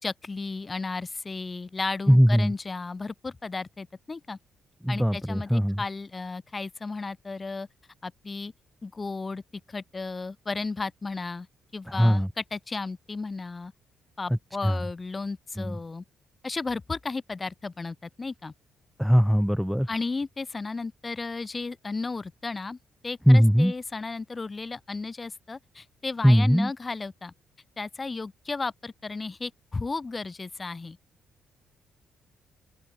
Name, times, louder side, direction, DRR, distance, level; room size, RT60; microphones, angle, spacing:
voice 1, 0.0-4.4 4.9-7.7 8.0-8.5 8.8-9.4 9.7-11.5 11.7-13.7 14.2-16.0 16.4-18.5 19.9-22.8 23.0-27.3 27.8-31.0, left 3 dB, 25° left, 4.1 m, -34 dB
voice 2, 2.1-2.5 4.8-5.8 11.9-12.3 14.6-14.8 15.6-15.8 19.0-19.9 23.3-23.7 26.2-26.7, equal, ahead, 0.5 m, -20 dB
open air
cardioid pair, 90°, 0 cm